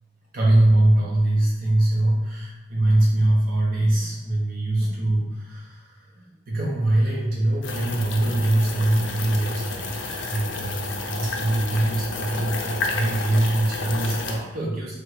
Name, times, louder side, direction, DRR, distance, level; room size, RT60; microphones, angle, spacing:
voice 1, 0.3-14.9, right 1 dB, 50° right, -4 dB, 0.5 m, -23 dB
sound 1, 7.6-14.4, left 3 dB, 75° left, 0.5 m, -31 dB
3.4 x 2.4 x 3.1 m, 1.1 s
head